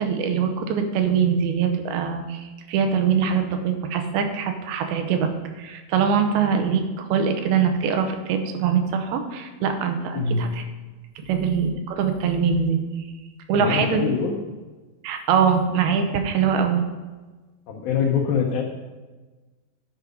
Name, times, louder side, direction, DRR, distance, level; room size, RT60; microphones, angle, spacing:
voice 1, 0.0-5.3 5.6-10.6 11.3-12.8 13.5-14.0 15.0-16.9, right 6 dB, 85° right, 6 dB, 2.7 m, -23 dB
voice 2, 13.5-14.4 17.7-18.6, left 6 dB, 75° left, 0 dB, 1.9 m, -24 dB
10.5 x 4.7 x 5.2 m, 1.2 s
omnidirectional pair, 4.4 m